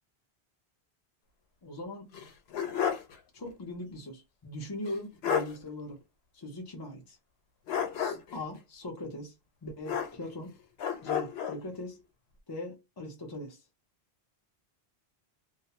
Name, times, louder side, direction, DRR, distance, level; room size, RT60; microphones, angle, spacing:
voice 1, 1.6-2.2 3.3-6.0 6.3-7.2 7.9-9.3 9.6-10.5 11.0-12.0 12.5-13.6, left 1 dB, 30° left, 0.5 m, -40 dB
sound 1, 2.1-3.2 3.5-3.6 4.9-5.0 5.2-5.6 7.7-8.4 9.8-10.5 10.8-11.6, left 8 dB, 80° left, 0.8 m, -31 dB
2.3 x 2.1 x 2.8 m
omnidirectional pair, 1.1 m